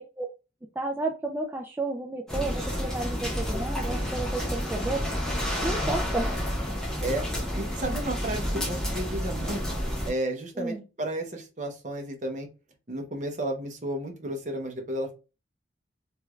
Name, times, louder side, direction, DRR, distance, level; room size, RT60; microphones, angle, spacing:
voice 1, 0.8-5.1 5.6-6.5 10.6-10.8, right 2 dB, 10° right, 1 dB, 0.3 m, -32 dB
sound 1, 2.3-10.1, equal, 5° left, 1.1 m, -30 dB
voice 2, 7.6-9.6 10.0-12.5 12.9-15.1, right 1 dB, 45° right, 3 dB, 0.8 m, -32 dB
3.2 x 3.1 x 2.3 m, 0.31 s
head